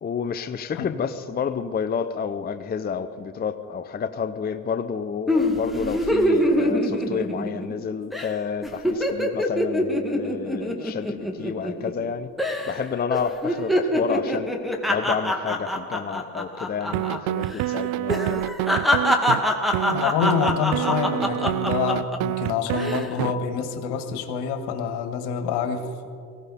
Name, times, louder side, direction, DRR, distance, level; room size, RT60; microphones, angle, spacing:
voice 1, 0.0-12.3 12.7-14.5 14.9-18.5, left 6 dB, 20° left, 9 dB, 0.6 m, -30 dB
sound 1, 5.3-7.8 8.1-8.3 8.6-12.1 12.4-12.8 13.1-17.2 17.4-17.6 18.1-22.2 22.7-23.1, left 1 dB, ahead, 1.9 m, -24 dB
sound 2, 16.9-19.4 19.7-23.3, right 16 dB, 60° right, 0.5 m, -27 dB
voice 2, 19.9-26.1, left 7 dB, 65° left, 6 dB, 1.9 m, -27 dB
18.5 x 16.0 x 4.2 m, 2.3 s
hypercardioid pair, 80°, 43 cm